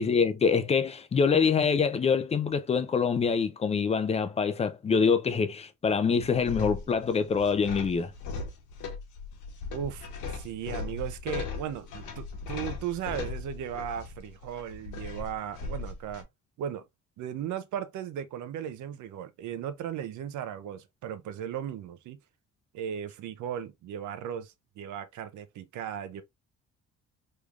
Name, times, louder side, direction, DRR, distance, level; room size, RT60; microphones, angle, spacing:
voice 1, 0.0-8.1, left 5 dB, 20° left, 0.4 m, -25 dB
sound 1, 6.2-16.2, left 4 dB, 85° left, 1.0 m, -38 dB
voice 2, 9.7-16.3 16.6-16.8 17.2-22.2 22.7-26.2, right 9 dB, 75° right, 0.7 m, -36 dB
3.5 x 3.2 x 2.4 m
cardioid pair, 160°, 30 cm